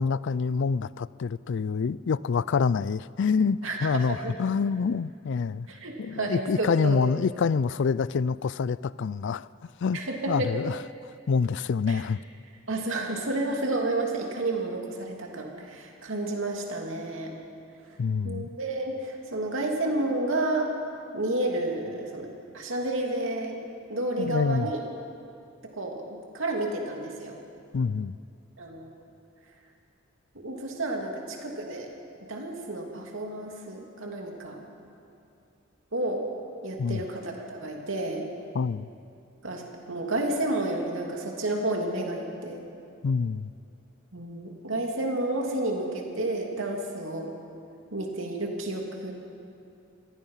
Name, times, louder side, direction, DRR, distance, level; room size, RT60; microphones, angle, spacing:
voice 1, 0.0-5.7 6.0-9.5 9.8-10.0 10.3-10.8 11.3-12.2 18.0-18.5 24.2-24.7 27.7-28.2 36.8-37.0 38.5-38.9 43.0-43.5, left 5 dB, 60° left, 0.4 m, -26 dB
voice 2, 3.6-4.3 5.7-7.1 9.9-10.5 11.9-12.0 12.7-17.3 18.2-20.7 21.1-23.6 23.9-24.8 25.8-27.3 28.6-28.9 30.3-31.9 32.2-34.6 35.9-36.2 36.6-38.3 39.4-42.6 44.1-47.3 47.9-49.1, right 2 dB, 65° right, 2.9 m, -31 dB
26.5 x 18.5 x 5.7 m
head